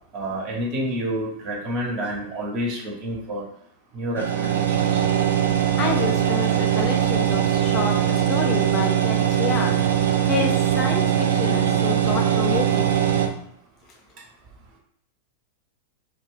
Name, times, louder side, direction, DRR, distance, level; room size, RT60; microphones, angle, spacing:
voice 1, 0.1-3.4 3.9-5.0, equal, 35° right, -3 dB, 1.1 m, -29 dB
sound 1, 4.2-13.3, right 10 dB, 65° right, 0.4 m, -21 dB
voice 2, 5.8-13.0, left 6 dB, 30° left, 2 dB, 0.4 m, -29 dB
2.4 x 2.2 x 3.6 m, 0.68 s
figure-of-eight pair, 90°, 0 cm